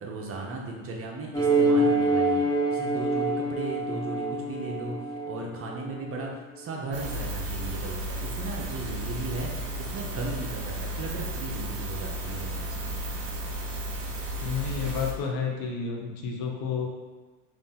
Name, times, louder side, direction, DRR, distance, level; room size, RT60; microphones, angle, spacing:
voice 1, 0.0-4.9 5.2-12.8, right 2 dB, 35° right, 0 dB, 0.8 m, -36 dB
sound 1, 1.3-6.3, right 2 dB, 10° left, 1.0 m, -26 dB
sound 2, 6.9-15.1, right 1 dB, 60° right, 1.1 m, -33 dB
voice 2, 14.4-16.9, left 6 dB, 50° left, 1 dB, 0.9 m, -30 dB
3.9 x 2.7 x 3.7 m, 1.2 s
supercardioid pair, 105°, 41 cm